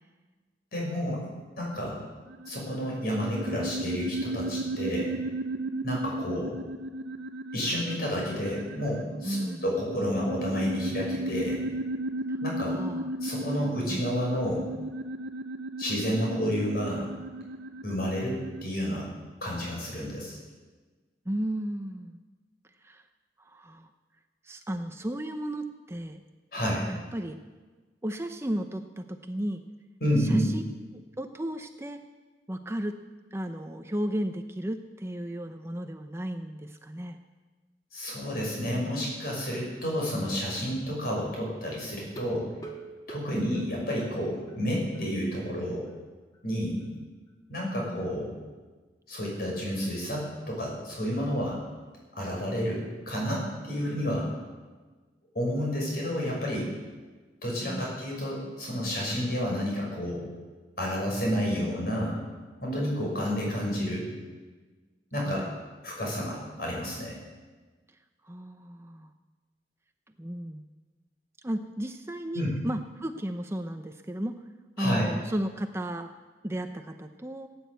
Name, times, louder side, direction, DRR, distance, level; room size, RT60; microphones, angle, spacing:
voice 1, 0.7-1.3 1.6-2.0 2.5-5.1 5.8-6.6 7.5-9.4 9.6-11.6 12.4-12.8 13.2-14.7 15.8-17.1 17.8-19.1 19.4-20.4 26.5-26.9 30.0-30.5 37.9-42.5 43.1-45.8 46.4-46.8 47.5-48.3 49.1-51.6 52.2-54.3 55.3-56.7 57.4-60.2 60.8-62.2 62.6-64.1 65.1-65.4 65.8-67.2 72.3-72.5 74.8-75.1, equal, 55° left, -2 dB, 6.5 m, -30 dB
sound 1, 2.3-18.6, right 1 dB, 85° right, 0.7 m, -35 dB
voice 2, 9.2-9.6 12.7-13.1 13.9-14.1 21.3-22.2 22.8-23.0 23.4-23.9 24.4-26.2 26.9-27.4 28.0-29.6 30.2-30.6 31.2-32.0 32.5-33.0 33.3-37.2 43.3-43.7 47.6-48.2 57.6-58.0 65.2-65.5 68.2-69.1 70.2-70.6 71.4-74.3 74.8-76.1 76.4-77.5, right 1 dB, 15° right, 7 dB, 0.6 m, -34 dB
sound 2, 42.0-44.6 44.9-45.0 45.4-45.5 45.9-46.0, right 4 dB, 20° left, 1.8 m, -45 dB
17.0 x 9.6 x 8.2 m, 1.3 s
head